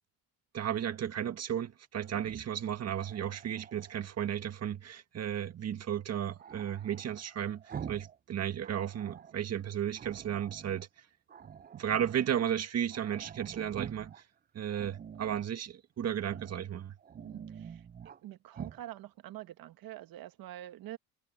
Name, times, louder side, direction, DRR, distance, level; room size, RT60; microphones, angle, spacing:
voice 1, 0.5-7.6 7.9-10.9 11.7-14.1 14.5-16.9, right 9 dB, 40° right, 1.8 m, -34 dB
Growling, 2.0-4.0 6.4-8.2 8.5-9.4 10.0-10.9 11.3-12.3 12.6-12.7 12.9-14.2 14.7-15.5 16.2-16.6 17.0-18.2 18.5-18.8, right 8 dB, 25° right, 0.6 m, -47 dB
voice 2, 17.2-17.9 18.2-21.0, right 13 dB, 65° right, 1.8 m, -46 dB
cardioid pair, 110°, 38 cm